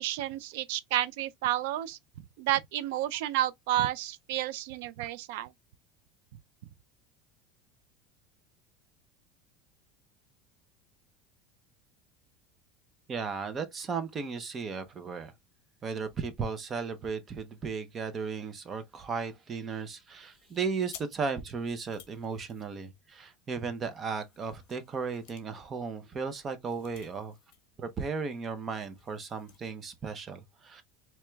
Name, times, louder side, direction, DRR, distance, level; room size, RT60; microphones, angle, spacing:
voice 1, 0.0-2.0 2.4-5.5, right 13 dB, 70° right, 0.3 m, -31 dB
voice 2, 13.1-15.3 15.8-27.3 27.8-30.8, right 5 dB, 20° right, 0.5 m, -35 dB
sound 1, 20.1-23.2 23.8-27.7 28.0-28.1 28.4-29.7, left 11 dB, 60° left, 0.9 m, -55 dB
4.4 x 2.9 x 2.2 m
cardioid pair, 170°, 0 cm